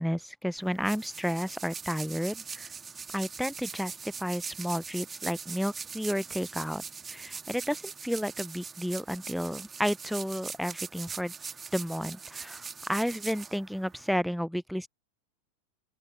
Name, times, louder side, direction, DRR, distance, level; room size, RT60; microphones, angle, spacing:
voice 1, 0.0-2.7 3.1-11.3 11.7-14.9, equal, ahead, 0.7 m, -32 dB
sound 1, 0.6-14.1, right 5 dB, 15° right, 2.4 m, -42 dB
open air
figure-of-eight pair, 90°, 0 cm